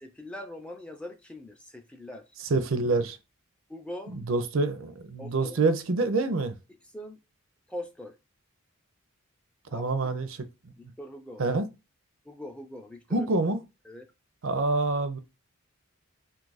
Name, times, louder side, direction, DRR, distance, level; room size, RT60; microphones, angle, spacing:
voice 1, 0.0-2.3 3.7-4.2 5.2-5.6 6.9-7.2 7.7-8.2 9.7-10.1 10.8-11.4 12.3-13.3 13.9-14.1, left 1 dB, 5° left, 0.3 m, -42 dB
voice 2, 2.5-3.2 4.1-6.6 9.7-10.4 11.4-11.7 13.1-13.6 14.4-15.2, right 3 dB, 65° right, 0.5 m, -26 dB
2.7 x 2.4 x 3.9 m
head